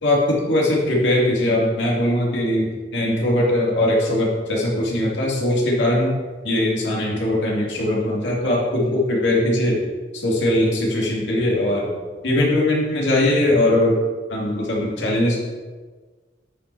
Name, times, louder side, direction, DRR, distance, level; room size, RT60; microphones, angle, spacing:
voice 1, 0.0-6.2 6.4-9.9 10.1-11.9 12.2-14.0 14.3-15.4, left 1 dB, 75° left, -3 dB, 2.6 m, -20 dB
9.8 x 5.6 x 4.7 m, 1.4 s
head